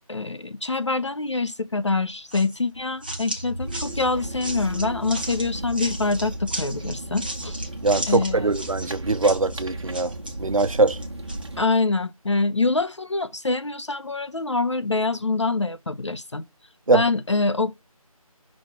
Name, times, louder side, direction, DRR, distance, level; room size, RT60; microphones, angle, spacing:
voice 1, 0.1-7.6 8.1-8.5 11.6-16.4 16.9-17.8, left 3 dB, 50° left, 0.5 m, -25 dB
sound 1, 2.3-11.5, right 1 dB, 15° right, 0.7 m, -36 dB
sound 2, 3.6-11.6, right 1 dB, 45° right, 1.2 m, -35 dB
voice 2, 7.8-10.1 10.4-11.0 16.9-17.0, right 3 dB, 65° right, 0.7 m, -21 dB
6.1 x 4.0 x 5.8 m
figure-of-eight pair, 165°, 19 cm